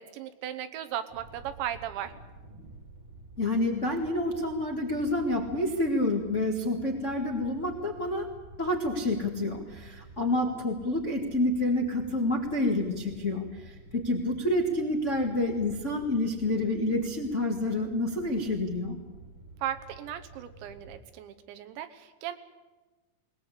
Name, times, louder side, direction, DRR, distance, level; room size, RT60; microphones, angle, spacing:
voice 1, 0.0-2.1 19.6-22.4, right 11 dB, 80° right, 10 dB, 3.4 m, -36 dB
sound 1, 1.1-21.0, right 2 dB, 45° right, 1.8 m, -50 dB
voice 2, 3.4-8.3 8.6-19.0, left 1 dB, 45° left, 0 dB, 0.9 m, -28 dB
20.5 x 20.0 x 8.3 m, 1.3 s
omnidirectional pair, 5.2 m